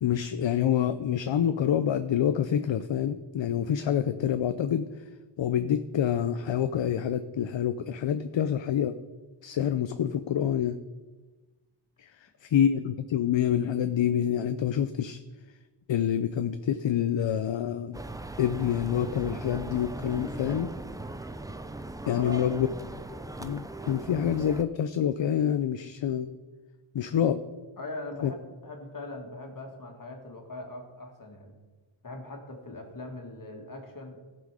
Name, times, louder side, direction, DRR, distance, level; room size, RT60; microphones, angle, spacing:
voice 1, 0.0-4.9 5.4-9.0 9.4-10.8 12.0-15.2 15.9-18.0 18.4-20.7 22.1-22.7 23.4-26.3 26.9-27.4 28.2-28.3, left 9 dB, 65° left, 11 dB, 0.6 m, -27 dB
sound 1, 17.9-24.6, right 2 dB, 10° right, 0.3 m, -39 dB
voice 2, 22.0-22.4 27.8-28.4 28.6-31.5 32.0-34.3, left 2 dB, 40° left, 2 dB, 2.0 m, -40 dB
16.5 x 6.0 x 4.9 m, 1.3 s
wide cardioid pair, 115°, 49 cm